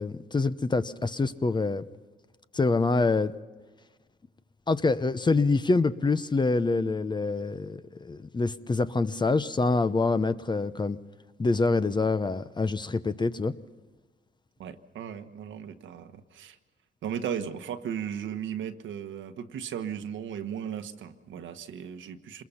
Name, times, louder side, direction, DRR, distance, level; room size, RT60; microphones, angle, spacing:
voice 1, 0.0-1.8 2.5-3.3 4.7-11.0 11.4-13.5, left 3 dB, 20° left, 13 dB, 0.8 m, -26 dB
voice 2, 14.6-16.6 17.0-22.4, right 8 dB, 75° right, 8 dB, 1.4 m, -36 dB
26.5 x 21.0 x 5.7 m, 1.3 s
cardioid pair, 90°, 20 cm